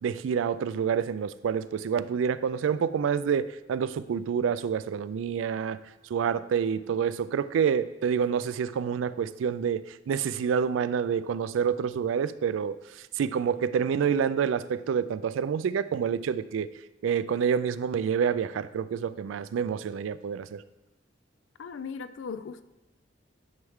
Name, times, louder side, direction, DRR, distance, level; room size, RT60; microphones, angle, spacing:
voice 1, 0.0-5.8 6.1-12.8 13.2-16.7 17.0-20.6, right 7 dB, 90° right, 0.3 m, -28 dB
voice 2, 21.6-22.6, left 5 dB, 75° left, 0.4 m, -37 dB
9.7 x 4.5 x 3.5 m
head